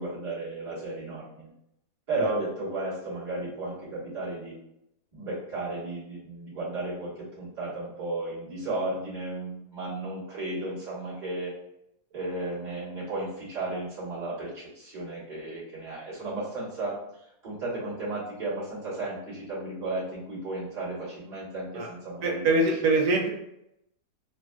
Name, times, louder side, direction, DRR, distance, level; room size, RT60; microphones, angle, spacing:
voice 1, 0.0-1.5 2.1-4.5 5.1-11.5 12.1-17.0 17.4-23.1, right 2 dB, 25° right, -11 dB, 1.3 m, -34 dB
voice 2, 22.2-23.3, right 2 dB, 80° right, -1 dB, 1.2 m, -23 dB
3.2 x 2.5 x 2.3 m, 0.81 s
omnidirectional pair, 1.8 m